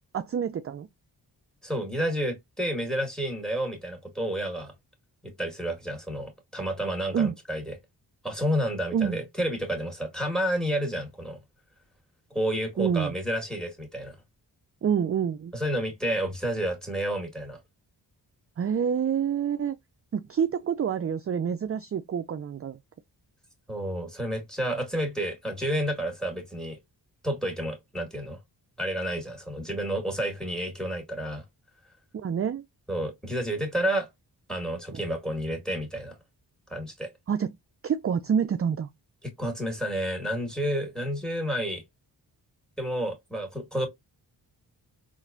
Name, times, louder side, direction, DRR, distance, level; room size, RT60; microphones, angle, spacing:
voice 1, 0.1-0.9 7.1-7.3 8.9-9.2 12.8-13.1 14.8-15.5 18.6-19.8 20.1-22.8 32.1-32.6 34.9-35.0 37.3-37.5 37.8-38.9, right 7 dB, 35° right, 0.4 m, -27 dB
voice 2, 1.6-4.7 5.2-7.7 8.2-11.4 12.3-14.2 15.5-17.6 23.7-26.8 27.2-28.4 28.8-31.4 32.9-34.1 34.5-36.1 36.7-37.1 39.4-41.8 42.8-43.9, equal, ahead, 1.9 m, -30 dB
3.9 x 2.6 x 2.6 m
cardioid pair, 45°, 45 cm